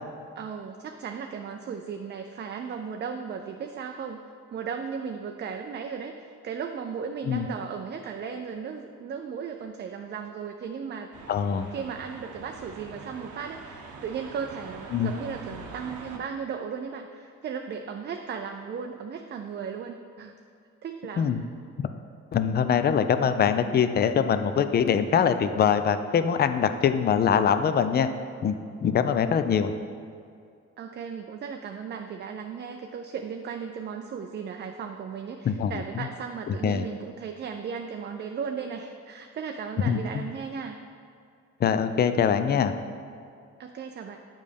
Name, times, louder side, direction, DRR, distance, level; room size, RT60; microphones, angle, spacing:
voice 1, 0.4-4.2 4.5-11.1 11.7-20.3 20.8-21.4 30.8-40.8 43.6-44.2, right 6 dB, 35° right, 5 dB, 0.4 m, -36 dB
sound 1, 11.1-16.2, right 4 dB, 80° right, 0.7 m, -44 dB
voice 2, 11.3-11.7 14.9-15.1 21.2-21.4 21.8-21.9 22.3-28.1 28.4-28.6 28.8-29.7 35.4-36.0 36.5-36.9 39.9-40.3 41.6-42.7, left 7 dB, 35° left, 10 dB, 0.4 m, -23 dB
7.4 x 5.3 x 3.4 m, 2.4 s
cardioid pair, 90°, 30 cm